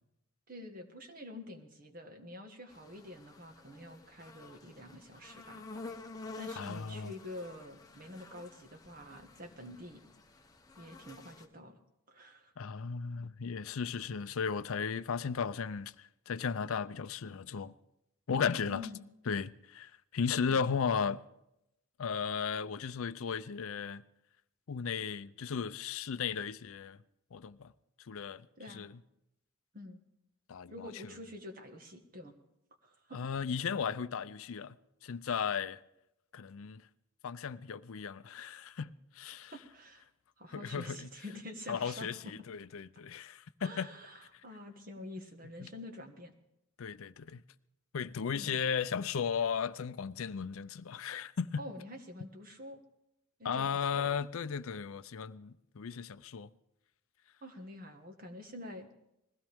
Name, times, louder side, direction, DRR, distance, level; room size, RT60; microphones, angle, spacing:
voice 1, 0.5-5.6 6.3-10.0 10.8-11.8 12.1-12.5 18.7-19.0 20.5-20.6 28.6-28.9 29.7-30.0 30.7-32.3 32.8-33.2 39.5-40.0 40.4-42.3 43.6-46.3 48.3-48.6 51.6-52.8 53.4-54.2 57.4-58.9, left 1 dB, 40° right, 1.6 m, -47 dB
sound 1, 2.7-11.5, left 3 dB, 15° left, 1.0 m, -50 dB
voice 2, 6.6-7.1 12.6-17.7 18.3-18.8 19.3-21.2 22.0-24.0 24.7-27.0 27.3-27.7 28.1-28.4 28.7-28.9 30.5-30.9 33.1-34.8 35.0-35.8 36.3-36.8 37.2-39.5 40.5-41.1 41.7-43.9 45.6-45.7 46.8-47.4 47.9-51.6 53.4-56.5, left 6 dB, 70° left, 0.5 m, -35 dB
21.0 x 16.0 x 3.6 m
head